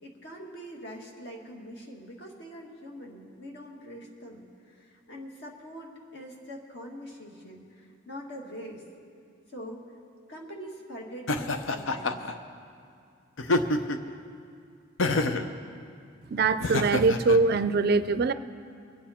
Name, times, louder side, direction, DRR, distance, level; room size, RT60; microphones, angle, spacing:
voice 1, 0.0-8.8 9.5-9.8 10.3-12.2, equal, 55° left, 0 dB, 2.0 m, -43 dB
Laughter, 11.3-12.3 13.4-14.1 15.0-15.5 16.6-17.4, left 2 dB, 75° left, 0.7 m, -27 dB
voice 2, 16.3-18.3, right 4 dB, 50° right, 12 dB, 0.4 m, -23 dB
23.5 x 9.2 x 4.3 m, 2.4 s
head